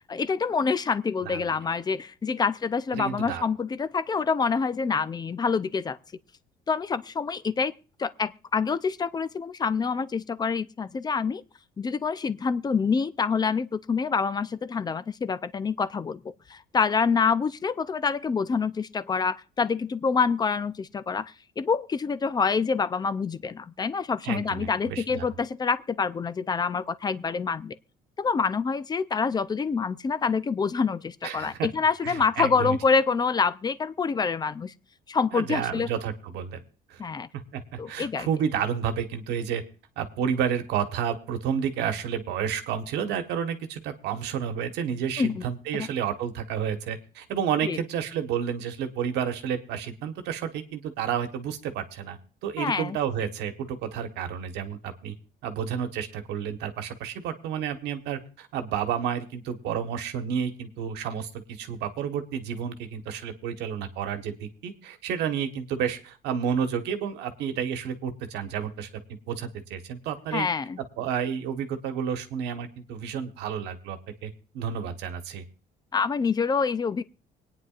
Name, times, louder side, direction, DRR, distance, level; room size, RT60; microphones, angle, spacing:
voice 1, 0.1-6.0 6.7-7.7 8.0-11.4 11.8-16.2 16.5-27.8 28.2-34.7 35.1-35.9 37.0-37.3 37.8-38.3 45.2-45.5 45.7-45.9 47.6-47.8 52.6-53.0 70.3-70.8 75.9-77.0, left 5 dB, 25° left, 0.5 m, -26 dB
voice 2, 2.9-3.4 24.2-25.2 31.2-31.7 32.0-32.7 35.3-36.6 36.9-37.0 37.5-39.6 40.0-55.1 55.4-70.5 71.0-75.4, right 8 dB, 85° right, 1.4 m, -31 dB
25.0 x 9.4 x 2.5 m
cardioid pair, 110°, 17 cm